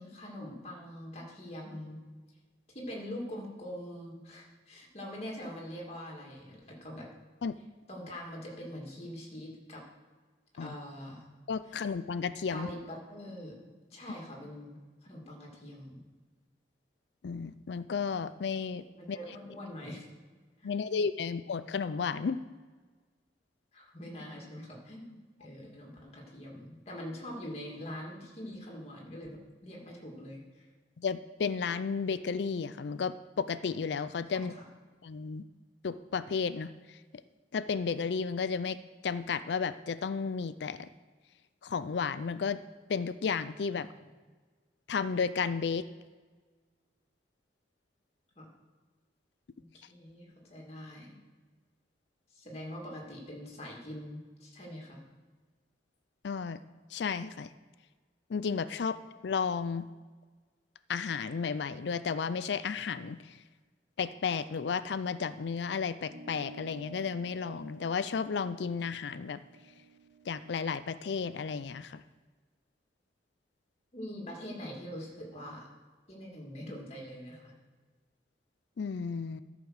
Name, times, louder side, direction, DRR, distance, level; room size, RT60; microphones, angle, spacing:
voice 1, 0.0-2.0 2.7-7.1 7.9-9.8 10.6-11.3 11.6-11.8 12.5-13.6 13.9-16.0 18.9-20.1 20.6-20.7 23.7-30.7 34.3-34.6 43.7-44.1 48.4-48.5 49.6-51.2 52.3-55.0 73.9-75.7 76.1-77.5, equal, 35° left, -1 dB, 2.2 m, -44 dB
voice 2, 11.5-12.7 17.2-19.2 20.6-22.4 31.0-34.5 35.0-35.4 35.8-36.7 37.5-38.8 39.0-40.9 41.6-42.6 42.9-43.9 44.9-45.9 56.2-56.6 56.9-57.5 58.3-59.9 60.9-63.2 64.0-69.4 70.3-72.0 78.8-79.4, left 5 dB, 65° left, 14 dB, 0.4 m, -33 dB
sound 1, 66.1-70.9, right 3 dB, 60° right, 3.0 m, -52 dB
12.5 x 5.1 x 6.4 m, 1.4 s
head